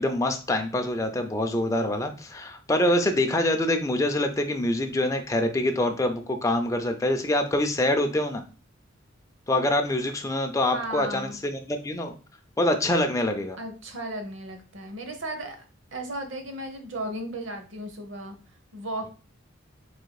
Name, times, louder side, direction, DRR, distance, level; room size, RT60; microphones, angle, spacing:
voice 1, 0.0-8.4 9.5-12.2 12.6-13.6, left 1 dB, 15° left, 5 dB, 0.5 m, -25 dB
voice 2, 10.7-11.4 13.6-15.6 15.9-18.4 18.7-19.1, right 1 dB, 65° right, 6 dB, 0.9 m, -35 dB
4.9 x 3.7 x 2.3 m, 0.36 s
head